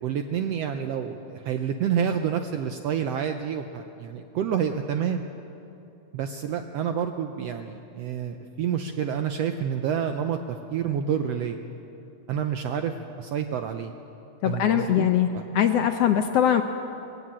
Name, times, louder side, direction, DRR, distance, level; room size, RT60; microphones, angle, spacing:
voice 1, 0.0-5.2 6.1-11.6 12.3-13.9 14.4-15.1 15.3-15.4, right 8 dB, 80° right, 6 dB, 1.5 m, -28 dB
voice 2, 14.4-15.3 15.5-16.6, left 10 dB, 75° left, 7 dB, 1.5 m, -21 dB
20.0 x 15.0 x 8.6 m, 2.9 s
omnidirectional pair, 3.5 m